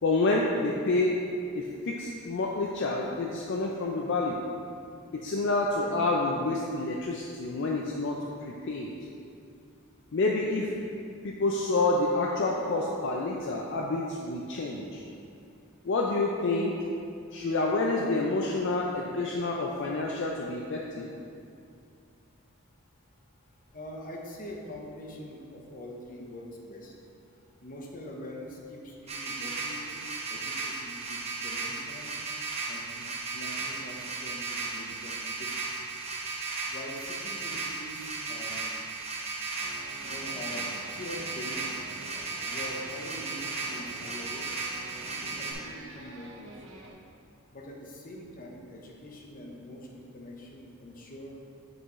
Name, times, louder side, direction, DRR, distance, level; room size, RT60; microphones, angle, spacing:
voice 1, 0.0-1.2 1.6-4.4 5.1-8.9 10.1-10.7 11.2-15.0 15.8-16.8 17.3-21.1, left 2 dB, 60° left, -1 dB, 0.5 m, -28 dB
voice 2, 23.7-26.9 27.6-30.0 30.3-32.1 32.4-35.8 36.6-38.7 39.0-39.1 40.0-41.7 42.4-44.7 45.1-46.7 47.5-51.4, left 1 dB, 45° left, -1 dB, 1.0 m, -44 dB
sound 1, 29.1-45.5, right 3 dB, 30° right, 1.0 m, -35 dB
sound 2, 39.5-46.9, right 2 dB, 70° right, 1.0 m, -48 dB
7.8 x 6.1 x 3.1 m, 2.5 s
head